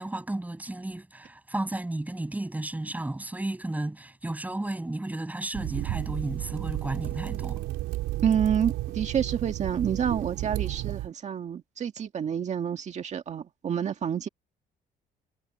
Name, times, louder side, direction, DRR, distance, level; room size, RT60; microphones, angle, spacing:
voice 1, 0.0-7.7, right 1 dB, 10° right, 7.1 m, -33 dB
sound 1, 5.5-11.1, right 17 dB, 90° right, 4.0 m, -32 dB
voice 2, 8.2-14.3, right 8 dB, 45° right, 1.9 m, -28 dB
cardioid pair, 110°, 17 cm